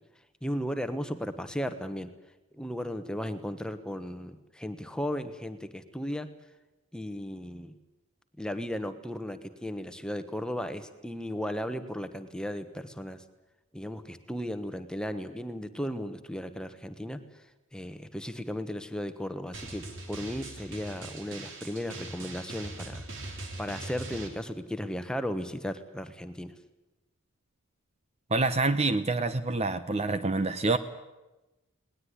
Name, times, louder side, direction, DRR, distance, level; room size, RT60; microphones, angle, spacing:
voice 1, 0.4-2.1 2.5-6.3 6.9-7.8 8.4-13.2 13.7-17.2 17.7-23.1 23.6-26.5, equal, 5° left, 9 dB, 1.2 m, -35 dB
Drum, 19.5-24.3, right 2 dB, 60° right, 3.4 m, -41 dB
voice 2, 28.3-30.8, right 3 dB, 30° right, 12 dB, 0.8 m, -27 dB
20.0 x 19.0 x 9.7 m, 1.0 s
head